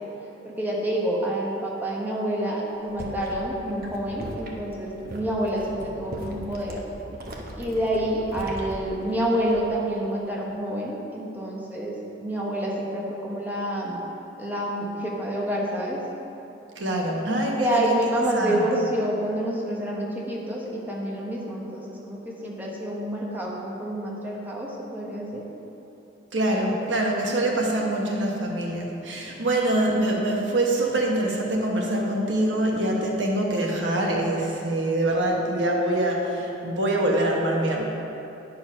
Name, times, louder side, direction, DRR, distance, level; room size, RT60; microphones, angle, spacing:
voice 1, 0.4-6.8 7.6-14.0 14.4-16.0 17.6-25.4, right 1 dB, 10° right, -4 dB, 1.1 m, -28 dB
sound 1, 2.7-9.9 10.2-10.5, right 1 dB, 55° right, 0.9 m, -40 dB
voice 2, 16.8-18.0 18.3-18.6 26.3-37.8, right 1 dB, 80° right, -1 dB, 1.1 m, -24 dB
9.8 x 4.6 x 5.4 m, 3.0 s
head